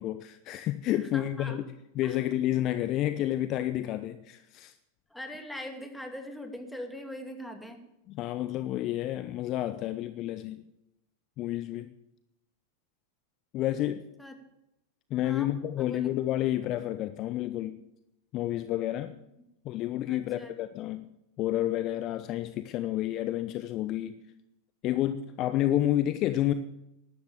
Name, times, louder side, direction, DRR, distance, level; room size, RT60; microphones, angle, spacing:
voice 1, 0.0-4.7 8.1-10.6 11.4-11.9 13.5-14.1 15.1-17.8 18.3-19.2 19.6-21.1 21.4-24.2 24.8-26.5, left 13 dB, 40° left, 11 dB, 0.7 m, -30 dB
voice 2, 0.9-1.6 2.0-2.2 5.1-7.8 14.2-14.4 15.2-15.5 15.8-16.1 20.1-20.6, left 1 dB, 5° left, 4 dB, 2.6 m, -41 dB
12.5 x 11.5 x 7.1 m, 0.86 s
figure-of-eight pair, 90°, 0 cm